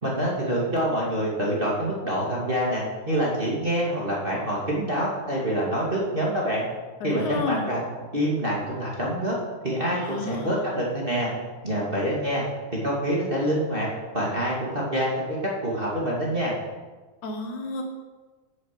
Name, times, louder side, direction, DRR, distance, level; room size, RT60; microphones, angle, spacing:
voice 1, 0.0-6.7 7.0-7.9 8.1-9.4 9.6-11.3 11.6-12.4 12.7-13.9 14.1-15.4 15.6-16.6, equal, 20° right, -5 dB, 2.1 m, -26 dB
voice 2, 7.0-7.7 9.9-10.5 17.2-17.8, left 4 dB, 80° left, 4 dB, 2.8 m, -30 dB
9.8 x 7.2 x 7.4 m, 1.3 s
omnidirectional pair, 3.3 m